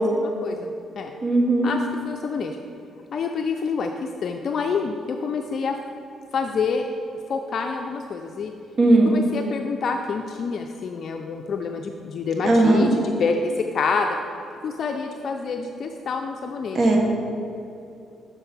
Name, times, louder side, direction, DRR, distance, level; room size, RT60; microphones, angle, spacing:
voice 1, 0.0-1.1 1.6-2.6 3.1-3.9 4.2-5.8 6.3-6.9 7.3-8.5 8.9-14.2 14.6-17.0, left 5 dB, 55° left, 4 dB, 0.4 m, -27 dB
voice 2, 1.2-1.7 8.8-9.1 12.4-12.9 16.7-17.0, right 2 dB, 45° right, 0 dB, 1.4 m, -17 dB
6.6 x 4.6 x 5.9 m, 2.7 s
cardioid pair, 90°, 0 cm